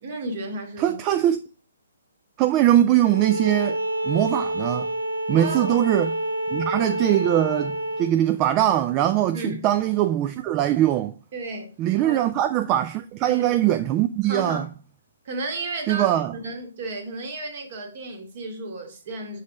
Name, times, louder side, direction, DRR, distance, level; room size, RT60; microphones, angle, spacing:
voice 1, 0.0-1.0 5.3-5.8 9.3-9.7 11.3-12.2 13.2-13.6 14.3-14.7 15.3-16.2 16.4-19.4, right 2 dB, 40° right, 1.6 m, -33 dB
voice 2, 0.8-1.4 2.4-3.8 4.0-4.9 5.3-6.1 6.5-11.1 11.8-14.7 15.9-16.3, right 12 dB, 25° right, 0.3 m, -21 dB
Bowed string instrument, 3.1-8.1, right 1 dB, 85° left, 1.1 m, -28 dB
6.3 x 4.1 x 4.9 m
figure-of-eight pair, 130°, 0 cm